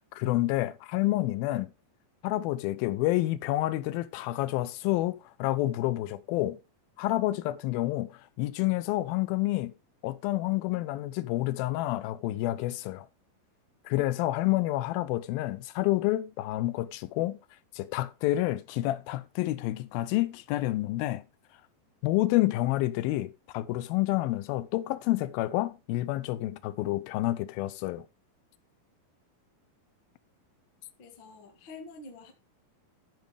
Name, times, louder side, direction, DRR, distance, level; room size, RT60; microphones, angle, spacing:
voice 1, 0.2-1.7 2.2-6.6 7.0-9.7 10.0-13.1 13.9-17.4 17.7-21.2 22.0-28.0, left 16 dB, 80° left, 2.5 m, -29 dB
voice 2, 31.0-32.3, left 3 dB, 45° left, 1.7 m, -47 dB
13.5 x 6.5 x 3.4 m
omnidirectional pair, 4.4 m